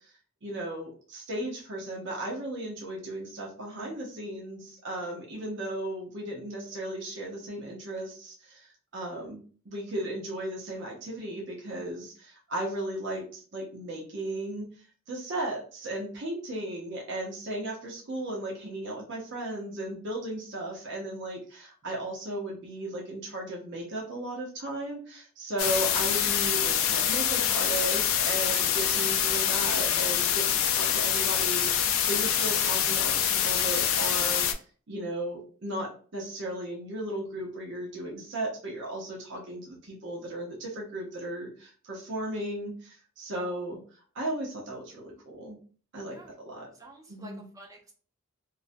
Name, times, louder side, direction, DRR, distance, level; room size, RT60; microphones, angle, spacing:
voice 1, 0.4-14.7 15.1-34.4 34.9-43.8 44.1-45.6 45.9-46.7 47.1-47.4, right 1 dB, 55° right, -2 dB, 0.6 m, -36 dB
sound 1, 25.6-34.5, left 9 dB, 70° left, 0.3 m, -25 dB
voice 2, 46.0-46.3 46.7-47.9, right 1 dB, 15° right, 0 dB, 0.5 m, -50 dB
2.4 x 2.0 x 2.5 m, 0.42 s
head